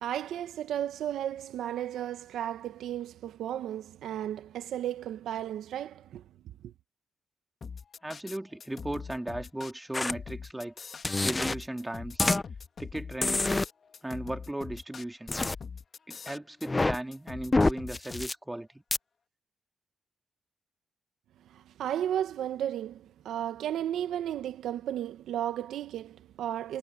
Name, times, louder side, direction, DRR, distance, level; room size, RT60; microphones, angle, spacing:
voice 1, 0.0-6.2 21.5-26.8, right 11 dB, 80° right, 1.3 m, -34 dB
sound 1, 7.6-18.3, left 5 dB, 55° left, 2.1 m, -43 dB
voice 2, 8.0-10.7 11.2-12.2 12.8-13.5 14.0-15.3 16.1-18.8, right 1 dB, 15° right, 2.9 m, -36 dB
sound 2, 9.9-10.1 11.0-11.6 12.2-12.4 13.2-13.7 15.3-15.6 16.6-17.0 17.5-18.3 18.9-19.0, left 2 dB, 25° left, 1.1 m, -26 dB
supercardioid pair, 45°, 0 cm